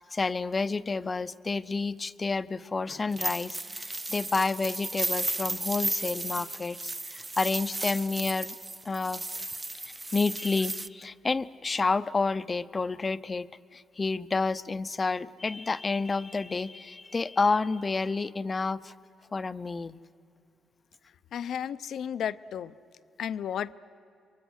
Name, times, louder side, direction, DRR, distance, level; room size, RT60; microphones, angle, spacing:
voice 1, 0.1-8.5 8.8-9.2 10.1-18.9 19.3-20.0, left 4 dB, 30° left, 13 dB, 0.6 m, -30 dB
sound 1, 3.1-10.9, right 2 dB, 20° right, 0.6 m, -34 dB
voice 2, 21.3-22.7 23.2-23.7, left 9 dB, 70° left, 15 dB, 0.6 m, -33 dB
29.0 x 23.5 x 6.4 m, 2.6 s
cardioid pair, 90°, 0 cm